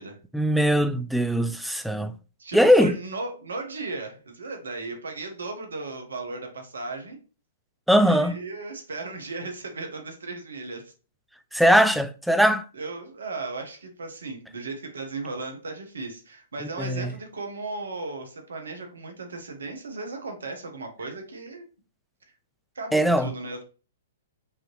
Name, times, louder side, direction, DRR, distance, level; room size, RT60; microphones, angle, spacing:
voice 1, 0.3-2.1 2.5-3.0 7.9-8.4 11.5-12.6 16.8-17.1 22.9-23.3, equal, ahead, 0.4 m, -20 dB
voice 2, 2.4-7.2 8.0-10.9 11.6-11.7 12.7-21.7 22.7-23.6, right 3 dB, 75° right, 1.2 m, -36 dB
5.4 x 3.0 x 3.1 m
figure-of-eight pair, 115°, 0 cm